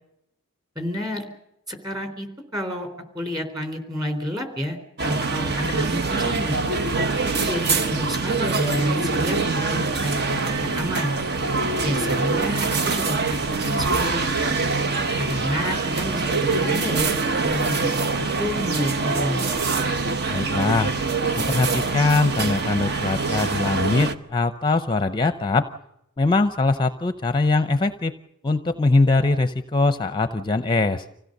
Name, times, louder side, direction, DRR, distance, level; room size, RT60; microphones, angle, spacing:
voice 1, 0.8-1.2 1.7-2.3 2.5-2.9 3.1-6.6 7.1-11.1 11.8-14.5 15.2-19.5, left 1 dB, 20° right, 6 dB, 3.7 m, -29 dB
sound 1, 5.0-24.2, right 4 dB, 50° right, 1.0 m, -24 dB
voice 2, 20.3-20.9 21.3-25.7 26.2-28.1 28.4-31.0, left 3 dB, 20° left, 9 dB, 0.7 m, -22 dB
26.0 x 16.5 x 6.6 m, 0.81 s
head